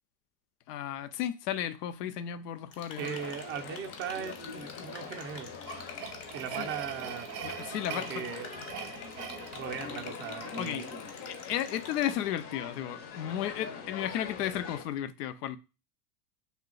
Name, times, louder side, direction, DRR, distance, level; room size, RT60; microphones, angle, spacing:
voice 1, 0.7-3.2 6.6-6.7 7.4-8.3 10.6-10.9 11.3-15.6, left 11 dB, 85° left, 0.5 m, -34 dB
sound 1, 2.7-12.1, left 5 dB, 70° left, 1.1 m, -48 dB
sound 2, 2.9-14.8, left 5 dB, 35° left, 0.6 m, -43 dB
voice 2, 3.0-5.6 6.3-7.3 7.9-8.7 9.2-11.0, right 8 dB, 30° right, 0.4 m, -39 dB
sound 3, 5.0-10.5, right 10 dB, 90° right, 0.5 m, -43 dB
2.7 x 2.2 x 3.7 m
supercardioid pair, 110°, 46 cm